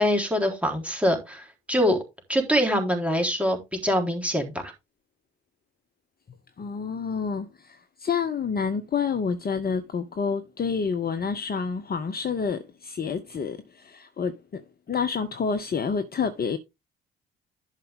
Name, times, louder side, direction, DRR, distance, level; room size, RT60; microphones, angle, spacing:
voice 1, 0.0-2.0 2.3-4.6, equal, 5° right, 3.7 m, -24 dB
voice 2, 6.6-16.6, left 6 dB, 30° left, 1.0 m, -28 dB
11.5 x 5.7 x 3.6 m
figure-of-eight pair, 45°, 30 cm